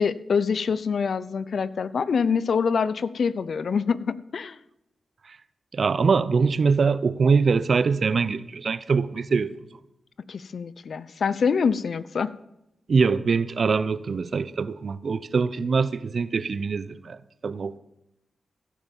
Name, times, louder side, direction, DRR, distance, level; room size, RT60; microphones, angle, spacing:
voice 1, 0.0-4.6 10.3-12.3, left 6 dB, 70° left, 0.6 m, -25 dB
voice 2, 5.7-9.5 12.9-17.8, right 5 dB, 65° right, 0.7 m, -23 dB
15.5 x 8.5 x 7.2 m
supercardioid pair, 40°, 0 cm